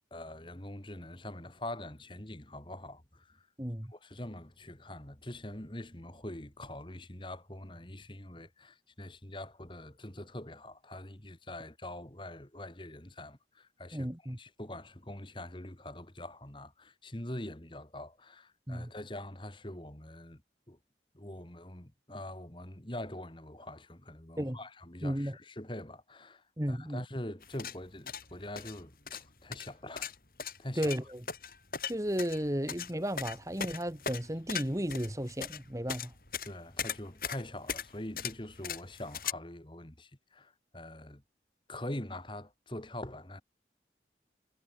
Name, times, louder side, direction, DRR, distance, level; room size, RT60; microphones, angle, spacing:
voice 1, 0.1-3.5 3.9-14.1 14.4-20.4 20.7-20.8 21.1-30.1 30.6-30.9 36.4-41.2 41.7-43.4, left 1 dB, 30° left, 2.4 m, -44 dB
voice 2, 3.6-3.9 13.9-14.4 18.7-18.9 24.4-24.6 25.0-25.4 26.6-27.0 30.8-31.2 31.9-36.1, equal, 20° right, 2.0 m, -34 dB
sound 1, 27.4-39.3, left 7 dB, 55° left, 6.0 m, -39 dB
head